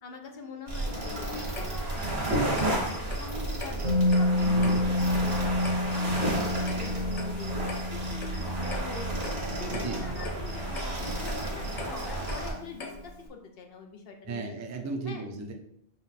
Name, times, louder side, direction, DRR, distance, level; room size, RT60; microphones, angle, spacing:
voice 1, 0.0-9.2 9.6-14.5 15.0-15.3, left 4 dB, 70° left, 4 dB, 0.9 m, -44 dB
sound 1, 0.7-12.5, right 1 dB, 85° right, 1.6 m, -32 dB
Clock, 1.5-13.3, left 3 dB, 45° left, 0.7 m, -44 dB
Musical instrument, 3.8-11.7 12.0-12.2, left 1 dB, 55° right, 0.9 m, -29 dB
voice 2, 9.7-10.2 14.2-15.5, right 4 dB, 25° right, 3 dB, 0.4 m, -35 dB
5.5 x 2.2 x 4.0 m, 0.72 s
omnidirectional pair, 1.0 m